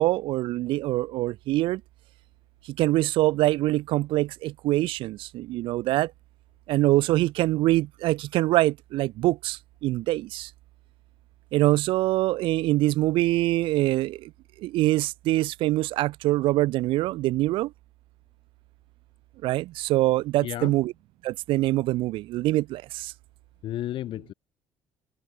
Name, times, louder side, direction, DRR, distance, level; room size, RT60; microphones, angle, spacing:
voice 1, 0.0-1.8 2.7-6.1 6.7-10.5 11.5-14.3 14.6-17.7 19.4-20.9 21.2-23.1, right 17 dB, 60° right, 0.4 m, -24 dB
voice 2, 20.4-20.8 23.6-24.3, left 13 dB, 55° left, 1.3 m, -32 dB
figure-of-eight pair, 55°, 10 cm